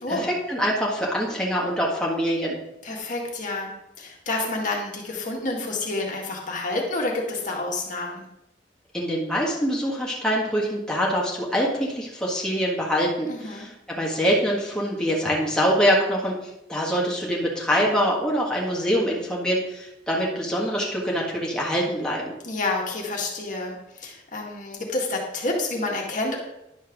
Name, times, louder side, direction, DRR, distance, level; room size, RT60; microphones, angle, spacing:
voice 1, 0.1-2.6 8.9-16.4 16.7-22.3, equal, 5° left, -4 dB, 1.6 m, -24 dB
voice 2, 2.8-8.3 13.3-13.7 22.4-26.3, left 2 dB, 45° left, -1 dB, 1.8 m, -29 dB
10.5 x 4.5 x 6.0 m, 0.89 s
head